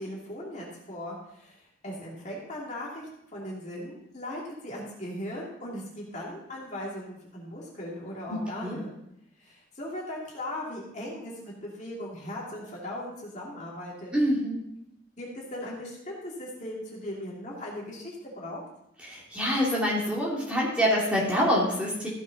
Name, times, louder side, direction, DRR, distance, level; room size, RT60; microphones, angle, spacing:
voice 1, 0.0-1.6 1.8-8.9 9.4-14.1 15.2-18.6, left 1 dB, 35° left, -4 dB, 2.6 m, -38 dB
voice 2, 8.3-8.8 14.1-14.6 19.0-22.1, equal, 5° right, -6 dB, 2.6 m, -26 dB
15.0 x 7.1 x 4.0 m, 0.79 s
head